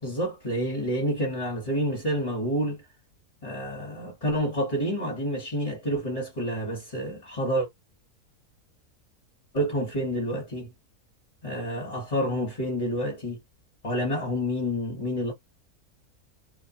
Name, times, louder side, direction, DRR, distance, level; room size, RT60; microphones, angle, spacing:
voice 1, 0.0-2.9 3.4-7.7 9.5-10.7 11.4-13.4 13.8-15.3, equal, 30° left, 0.8 m, -28 dB
2.4 x 2.2 x 2.6 m
omnidirectional pair, 1.6 m